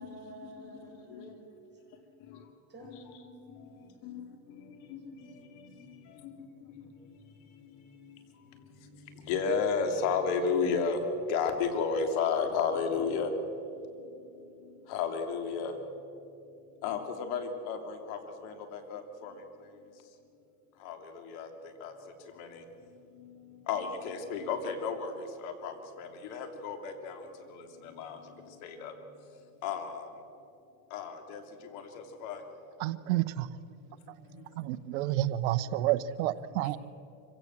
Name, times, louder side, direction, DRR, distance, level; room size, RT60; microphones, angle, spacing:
voice 1, 0.0-1.6 2.7-3.9 5.0-5.8, right 1 dB, 25° right, 1 dB, 6.0 m, -51 dB
voice 2, 2.8-3.2 4.0-5.1 5.6-5.7 6.2-6.3 8.0-8.1 9.3-11.0 11.3-13.3 14.9-15.7 16.8-19.3 20.8-21.5 21.8-21.9 22.4-22.6 23.7-27.2 27.6-28.2 28.6-28.9 29.6-30.1 30.9-31.4 31.7-32.4, left 5 dB, 65° left, 6 dB, 3.0 m, -33 dB
voice 3, 32.8-33.5 34.6-36.8, right 14 dB, 65° right, 15 dB, 1.0 m, -29 dB
25.5 x 16.0 x 7.5 m, 2.8 s
hypercardioid pair, 100°, 44 cm